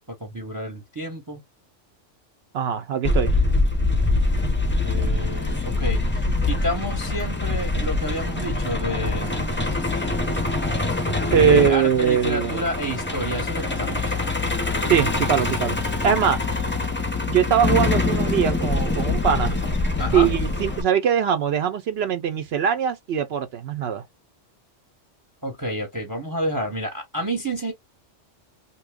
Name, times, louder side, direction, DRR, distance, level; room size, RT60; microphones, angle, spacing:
voice 1, 0.2-1.4 4.8-9.5 11.3-14.1 20.0-20.3 25.4-27.7, equal, 20° right, 0.8 m, -29 dB
voice 2, 2.5-3.4 11.3-12.6 14.9-15.8 16.0-16.4 17.3-19.6 20.1-24.0, right 8 dB, 65° right, 0.7 m, -21 dB
Truck, 3.0-20.8, left 3 dB, 15° left, 0.4 m, -24 dB
2.9 x 2.2 x 3.4 m
omnidirectional pair, 1.3 m